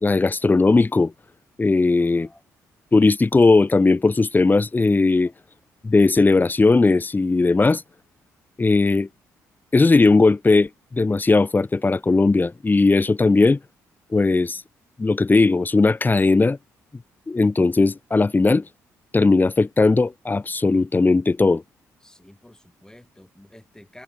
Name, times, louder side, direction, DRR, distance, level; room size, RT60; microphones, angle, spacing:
voice 1, 0.0-1.1 1.6-2.3 2.9-5.3 5.8-7.8 8.6-9.1 9.7-13.6 14.1-14.6 15.0-16.6 17.3-18.7 19.1-21.6, left 3 dB, 25° left, 1.4 m, -18 dB
voice 2, 2.0-2.4 5.2-5.3 22.0-24.0, left 1 dB, 10° left, 7.8 m, -49 dB
hypercardioid pair, 50°, 8 cm